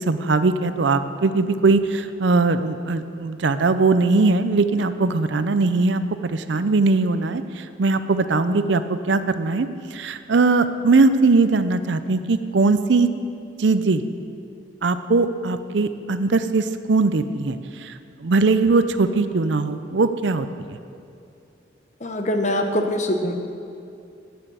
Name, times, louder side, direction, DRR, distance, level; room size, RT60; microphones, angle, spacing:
voice 1, 0.0-13.1 13.6-14.0 14.8-20.5, right 3 dB, 70° right, 11 dB, 0.5 m, -20 dB
voice 2, 22.0-23.3, left 1 dB, 40° left, 4 dB, 1.0 m, -23 dB
9.5 x 8.9 x 7.6 m, 2.5 s
head